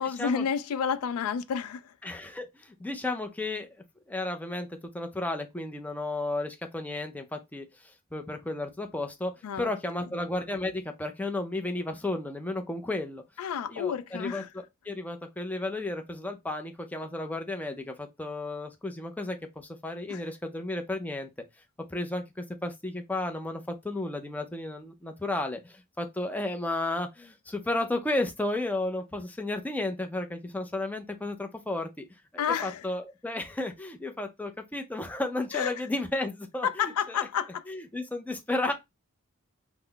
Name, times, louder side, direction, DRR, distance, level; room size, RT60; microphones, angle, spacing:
voice 1, 0.0-1.9 9.4-10.1 13.4-14.5 20.1-20.2 32.4-32.8 35.5-35.7 36.6-37.7, left 7 dB, 85° left, 0.3 m, -30 dB
voice 2, 2.0-3.7 4.1-4.7 4.9-13.2 13.7-14.4 14.8-21.3 21.9-32.1 32.3-37.2 37.7-38.7, left 2 dB, 5° left, 0.4 m, -33 dB
3.8 x 2.0 x 3.3 m
head